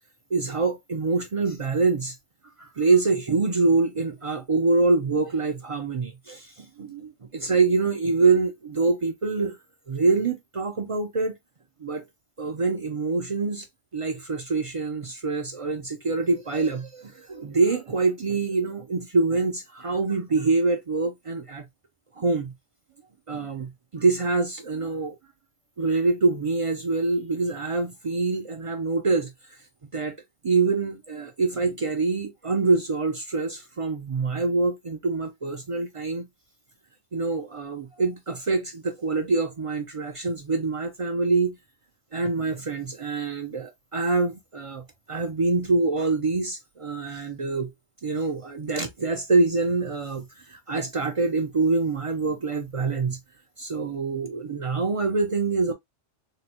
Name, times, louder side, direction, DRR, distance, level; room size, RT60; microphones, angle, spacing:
voice 1, 0.3-2.2 2.6-9.6 9.9-11.3 11.8-12.1 12.4-13.7 13.9-21.6 22.1-22.5 23.3-25.2 25.8-29.6 29.9-30.2 30.4-36.3 37.1-41.6 42.1-47.7 48.0-53.2 53.6-55.7, right 3 dB, 60° right, 0.3 m, -25 dB
3.7 x 2.0 x 2.8 m
omnidirectional pair, 1.2 m